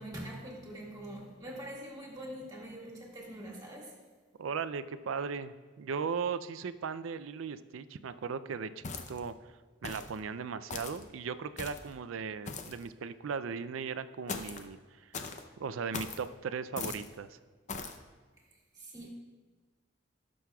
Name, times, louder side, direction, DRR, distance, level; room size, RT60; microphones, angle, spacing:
voice 1, 0.0-4.0 18.7-19.1, right 1 dB, 20° right, -3 dB, 2.0 m, -44 dB
voice 2, 4.4-9.3 9.8-15.1 15.6-17.4, right 5 dB, 85° right, 13 dB, 0.4 m, -37 dB
sound 1, 8.8-9.3 9.8-10.2 10.7-11.0 11.6-11.9 12.5-12.8 14.3-14.7 15.1-15.4 15.9-16.2 16.8-17.1 17.7-18.0, left 4 dB, 35° left, 0.6 m, -40 dB
17.5 x 6.3 x 2.3 m, 1.4 s
head